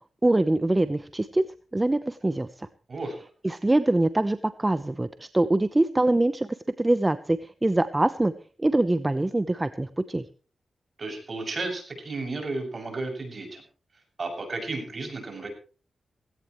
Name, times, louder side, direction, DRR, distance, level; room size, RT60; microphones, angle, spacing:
voice 1, 0.2-1.5 1.7-2.7 3.4-6.5 6.8-8.3 8.6-10.2, right 2 dB, 20° right, 12 dB, 0.8 m, -24 dB
voice 2, 11.0-13.6 14.2-15.5, right 3 dB, 50° right, 3 dB, 7.0 m, -33 dB
17.5 x 17.0 x 3.1 m, 0.38 s
cardioid pair, 70°, 0 cm